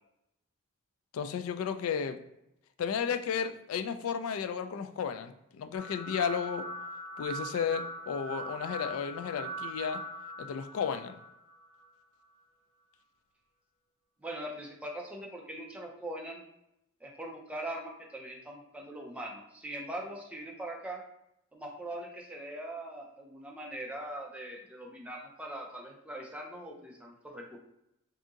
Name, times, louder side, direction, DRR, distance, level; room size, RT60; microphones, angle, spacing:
voice 1, 1.1-2.2 2.8-6.7 7.2-10.0 10.4-11.2, left 7 dB, 85° left, 8 dB, 0.3 m, -33 dB
sound 1, 5.8-11.8, right 1 dB, 40° right, 1.1 m, -41 dB
voice 2, 14.2-16.4 17.0-21.0 21.5-27.6, right 1 dB, 5° right, -1 dB, 0.5 m, -41 dB
2.7 x 2.6 x 3.6 m, 0.83 s
head